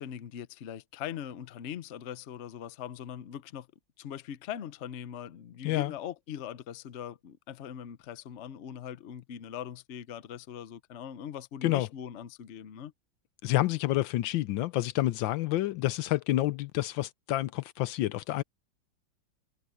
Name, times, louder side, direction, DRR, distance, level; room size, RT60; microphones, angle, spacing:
voice 1, 0.0-3.7 4.0-12.9, left 9 dB, 55° left, 0.8 m, -41 dB
voice 2, 13.4-18.4, left 16 dB, 80° left, 1.4 m, -28 dB
omnidirectional pair, 2.1 m